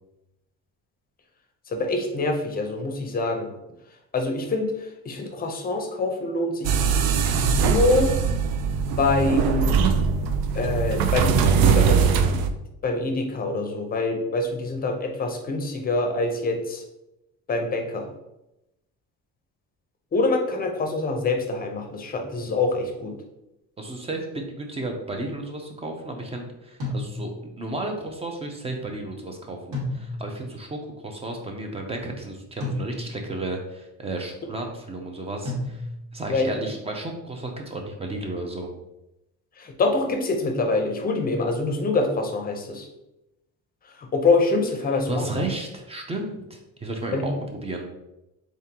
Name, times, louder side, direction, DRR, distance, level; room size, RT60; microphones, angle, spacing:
voice 1, 1.7-3.5 4.1-8.1 9.0-9.8 10.5-12.4 12.8-16.8 17.5-18.1 20.1-23.2 36.3-36.6 39.6-42.9 44.0-45.3 47.1-47.3, left 3 dB, 25° left, 4 dB, 0.6 m, -25 dB
sound 1, 6.6-12.5, right 6 dB, 85° right, 0.5 m, -21 dB
voice 2, 23.8-35.8 36.1-38.7 44.9-47.8, right 2 dB, 20° right, 3 dB, 0.5 m, -33 dB
sound 2, 26.8-27.6 29.7-30.5 32.6-33.4 35.4-36.2, left 1 dB, 65° right, 1.5 m, -32 dB
3.7 x 3.6 x 2.9 m, 0.90 s
cardioid pair, 150°, 34 cm